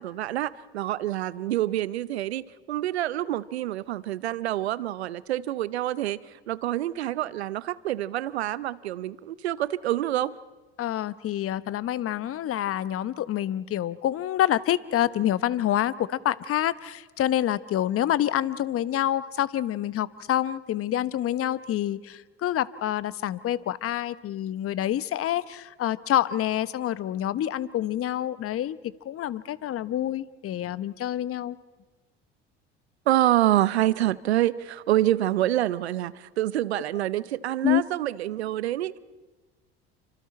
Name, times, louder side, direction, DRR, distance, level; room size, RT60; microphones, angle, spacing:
voice 1, 0.0-10.3 33.1-39.0, right 14 dB, 85° right, 19 dB, 0.7 m, -27 dB
voice 2, 10.8-28.8 29.0-31.6 37.6-37.8, left 12 dB, 45° left, 16 dB, 1.0 m, -27 dB
29.5 x 25.5 x 4.4 m, 1.2 s
hypercardioid pair, 65°, 31 cm